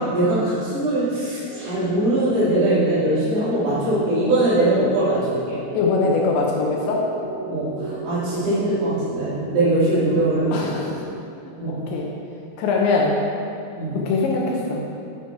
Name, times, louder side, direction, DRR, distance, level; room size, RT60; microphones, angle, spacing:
voice 1, 0.0-5.6 7.4-10.7 11.6-11.8 13.8-14.0, right 1 dB, 85° right, -12 dB, 5.0 m, -21 dB
sound 1, 1.5-11.1, right 1 dB, 65° right, 4.2 m, -34 dB
voice 2, 5.7-7.1 10.5-10.9 11.4-12.1 12.6-13.2 13.9-14.8, left 3 dB, 75° left, -2 dB, 2.8 m, -22 dB
12.0 x 5.2 x 4.3 m, 2.5 s
omnidirectional pair, 5.8 m